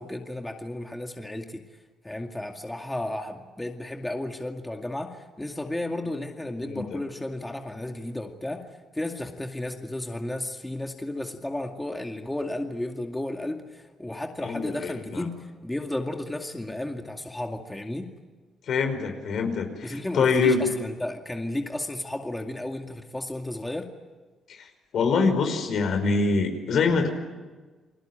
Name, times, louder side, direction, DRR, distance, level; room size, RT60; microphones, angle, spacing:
voice 1, 0.0-1.6 2.0-18.1 19.4-19.5 19.8-23.9, left 1 dB, 10° left, 3 dB, 2.3 m, -33 dB
voice 2, 14.4-15.3 18.7-20.7 24.9-27.1, left 4 dB, 65° left, 6 dB, 5.1 m, -24 dB
30.0 x 21.0 x 9.1 m, 1.3 s
cardioid pair, 90°, 0 cm